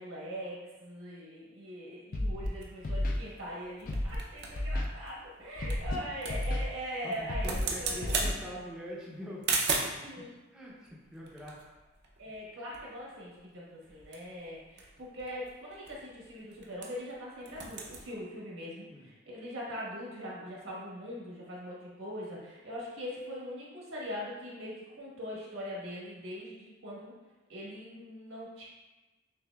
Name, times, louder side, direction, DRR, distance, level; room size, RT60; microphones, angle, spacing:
voice 1, 0.0-7.5 7.8-8.4 10.0-10.3 12.2-27.1 27.5-28.6, equal, 75° right, -5 dB, 1.3 m, -41 dB
Scratching (performance technique), 2.1-2.5 2.8-3.2 3.9-4.2 4.6-4.9 5.6-6.0 6.3-6.6 7.3-7.6 8.0-8.3, left 1 dB, 45° left, 0.5 m, -31 dB
sound 1, 2.6-10.1 10.8-12.5 12.7-12.8 13.1-13.4 13.8-17.1 17.4-18.0, right 4 dB, 55° right, 0.6 m, -38 dB
voice 2, 7.0-10.3 10.5-11.6 14.1-14.2 18.9-19.1, equal, 5° right, -6 dB, 0.6 m, -44 dB
6.6 x 2.6 x 2.3 m, 1.1 s
head